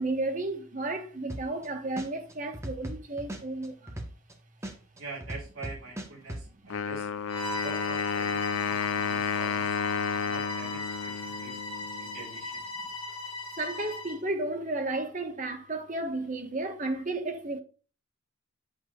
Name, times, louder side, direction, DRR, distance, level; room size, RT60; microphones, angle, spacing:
voice 1, 0.0-4.0 13.6-17.6, right 2 dB, 35° right, 1.4 m, -33 dB
sound 1, 1.3-1.7 2.0-4.3 4.6-6.4, right 1 dB, 15° right, 1.3 m, -37 dB
voice 2, 4.9-7.1 7.5-9.8 10.1-11.7 12.0-12.6, right 3 dB, 75° right, 4.2 m, -44 dB
Wind instrument woodwind instrument, 6.7-12.3, left 6 dB, 75° left, 0.4 m, -31 dB
Bowed string instrument, 7.3-14.2, left 2 dB, 25° left, 2.0 m, -38 dB
8.7 x 8.2 x 2.5 m
head